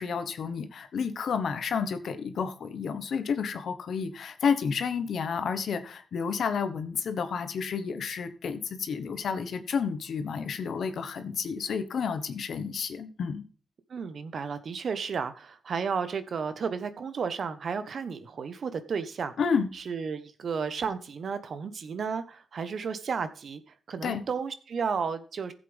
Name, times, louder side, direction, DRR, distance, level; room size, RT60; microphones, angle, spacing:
voice 1, 0.0-13.4 19.4-19.7 24.0-24.2, left 6 dB, 80° left, 9 dB, 1.2 m, -30 dB
voice 2, 13.9-19.3 19.7-23.6 23.9-25.5, right 6 dB, 70° right, 11 dB, 1.1 m, -33 dB
15.0 x 7.6 x 3.5 m, 0.42 s
supercardioid pair, 45°, 0 cm